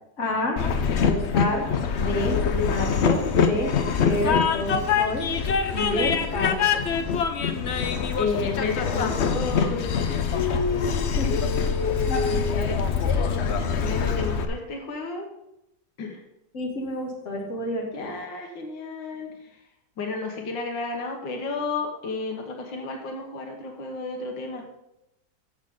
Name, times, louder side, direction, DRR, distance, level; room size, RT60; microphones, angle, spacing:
voice 1, 0.2-0.6 1.1-5.3 5.7-6.8 10.3-11.6 12.1-12.7 16.5-18.1, left 1 dB, 40° left, 0 dB, 2.2 m, -29 dB
Train, 0.6-14.4, left 6 dB, 60° left, 0.7 m, -24 dB
voice 2, 8.2-9.9 11.2-12.8 13.8-15.3 16.0-16.2 17.9-19.5 20.0-24.7, left 3 dB, 85° left, 2 dB, 1.9 m, -31 dB
14.0 x 6.2 x 3.7 m, 0.86 s
omnidirectional pair, 1.9 m